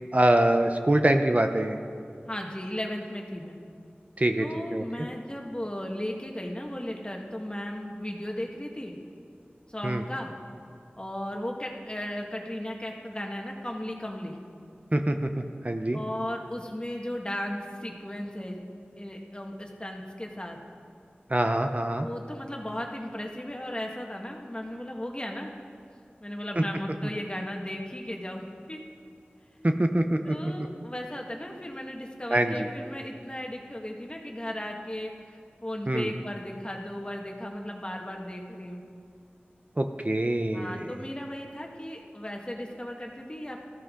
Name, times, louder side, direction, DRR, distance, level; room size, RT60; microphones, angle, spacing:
voice 1, 0.1-1.8 4.2-4.5 4.7-5.1 9.8-10.0 14.9-16.0 21.3-22.1 29.6-30.4 32.3-32.7 35.9-36.1 39.8-40.9, right 1 dB, 40° right, 5 dB, 0.8 m, -24 dB
voice 2, 2.3-3.6 4.4-9.0 9.7-10.3 11.0-14.4 15.9-18.6 19.0-20.6 22.0-25.5 26.2-28.8 30.2-38.8 40.5-43.6, left 1 dB, 25° left, 1 dB, 1.7 m, -36 dB
19.0 x 14.0 x 3.8 m, 2.3 s
wide cardioid pair, 45°, 4 cm